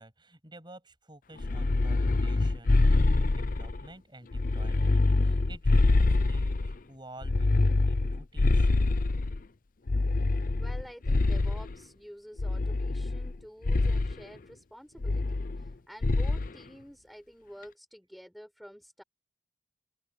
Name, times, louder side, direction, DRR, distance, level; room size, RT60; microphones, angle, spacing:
voice 1, 0.0-8.7, right 1 dB, 25° right, 7.3 m, -51 dB
sound 1, 1.4-3.8 4.3-6.8 7.2-9.4 9.9-11.7 12.4-13.3 13.6-14.1 15.0-15.7 16.0-16.5, left 2 dB, 45° left, 0.6 m, -25 dB
voice 2, 10.6-19.0, equal, ahead, 4.6 m, -49 dB
open air
head